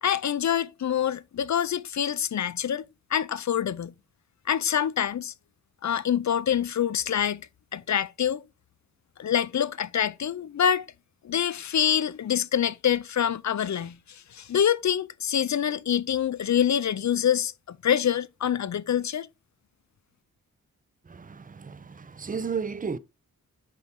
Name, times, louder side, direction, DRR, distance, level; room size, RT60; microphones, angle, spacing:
voice 1, 0.0-2.8 3.1-3.9 4.5-5.3 5.8-8.4 9.2-10.9 11.2-19.3, left 9 dB, 55° left, 0.5 m, -26 dB
voice 2, 21.0-23.0, right 5 dB, 25° right, 0.5 m, -33 dB
9.7 x 4.3 x 3.6 m
wide cardioid pair, 135°, 35 cm